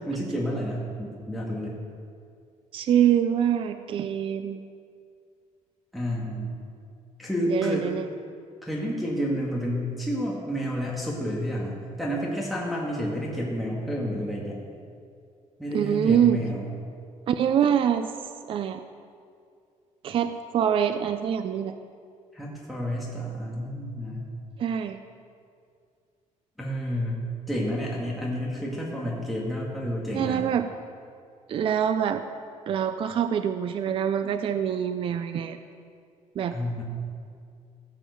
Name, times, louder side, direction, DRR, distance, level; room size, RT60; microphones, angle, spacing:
voice 1, 0.1-1.8 5.9-6.6 7.2-7.9 8.6-14.6 15.6-16.7 22.3-24.3 26.6-30.4 36.5-36.8, equal, ahead, -5 dB, 1.8 m, -30 dB
voice 2, 2.7-4.6 7.5-8.1 15.7-16.4 17.3-18.1 18.5-18.8 20.0-21.7 24.6-25.0 30.1-30.7 31.5-32.2 32.7-35.6 36.4-36.6, right 9 dB, 45° right, 9 dB, 0.5 m, -25 dB
16.0 x 7.5 x 7.0 m, 2.3 s
cardioid pair, 160°, 13 cm